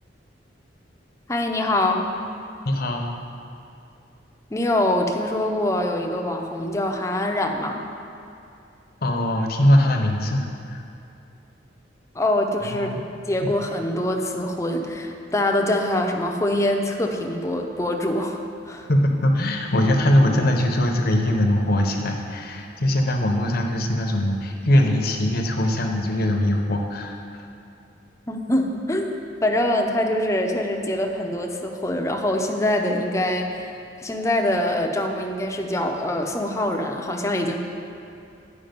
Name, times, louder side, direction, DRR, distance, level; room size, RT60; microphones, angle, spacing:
voice 1, 1.3-2.1 4.5-7.8 12.2-12.9 13.3-18.9 28.3-33.7 34.0-37.6, left 1 dB, 15° left, 2 dB, 0.5 m, -24 dB
voice 2, 2.6-3.2 9.0-10.8 12.6-13.0 13.4-13.5 18.9-27.2, left 1 dB, 55° left, 3 dB, 0.8 m, -21 dB
9.2 x 4.9 x 5.1 m, 2.6 s
head